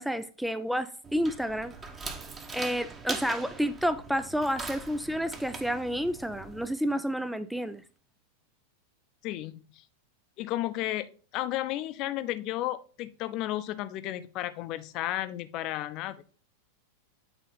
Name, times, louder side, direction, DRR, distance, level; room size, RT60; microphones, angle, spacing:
voice 1, 0.0-1.7 2.5-7.8, equal, ahead, 0.4 m, -30 dB
sound 1, 1.0-6.7, right 3 dB, 20° right, 1.2 m, -41 dB
voice 2, 9.2-9.8 10.4-16.2, left 14 dB, 40° left, 0.7 m, -33 dB
9.1 x 4.0 x 4.0 m
figure-of-eight pair, 90°, 0 cm